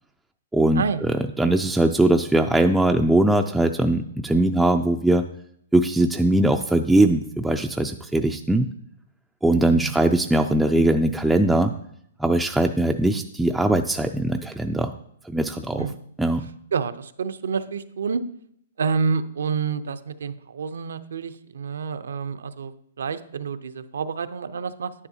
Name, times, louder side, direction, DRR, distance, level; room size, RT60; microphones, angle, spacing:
voice 1, 0.5-5.2 5.7-8.7 9.4-11.7 12.2-14.9 15.2-15.9 16.2-16.5, right 1 dB, 5° right, 3 dB, 0.3 m, -20 dB
voice 2, 16.7-18.2 18.8-24.9, right 5 dB, 80° right, 12 dB, 0.6 m, -28 dB
9.9 x 9.7 x 2.8 m, 0.71 s
hypercardioid pair, 145°, 0 cm